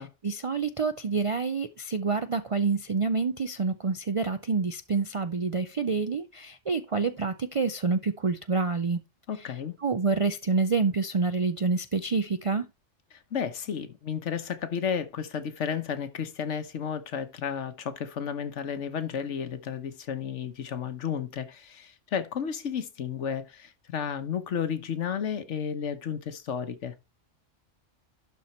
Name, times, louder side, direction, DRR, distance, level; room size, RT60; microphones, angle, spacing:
voice 1, 0.0-9.0 9.4-9.5 9.8-12.7, right 4 dB, 50° right, 0.4 m, -27 dB
voice 2, 9.3-9.7 13.1-26.9, left 7 dB, 75° left, 1.3 m, -32 dB
11.5 x 4.3 x 4.3 m
omnidirectional pair, 1.3 m